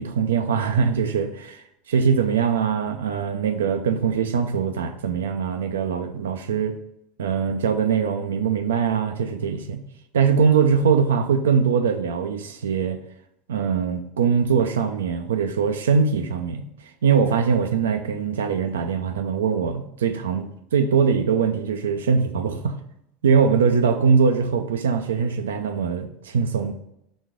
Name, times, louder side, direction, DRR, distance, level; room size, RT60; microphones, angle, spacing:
voice 1, 0.0-6.8 7.2-9.8 10.1-13.0 13.5-16.6 17.0-22.7 23.2-26.7, right 6 dB, 70° right, 7 dB, 0.5 m, -22 dB
6.2 x 3.6 x 5.0 m, 0.79 s
figure-of-eight pair, 75°, 0 cm